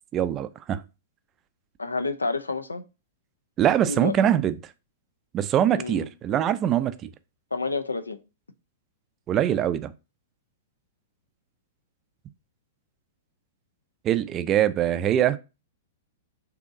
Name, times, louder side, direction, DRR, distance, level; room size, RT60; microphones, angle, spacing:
voice 1, 0.1-0.8 3.6-4.6 5.3-7.1 9.3-9.9 14.0-15.4, right 10 dB, 30° right, 0.3 m, -23 dB
voice 2, 1.8-2.8 3.9-4.1 5.7-6.1 7.5-8.2, left 3 dB, 90° left, 0.4 m, -29 dB
3.8 x 2.8 x 3.7 m
figure-of-eight pair, 105°, 0 cm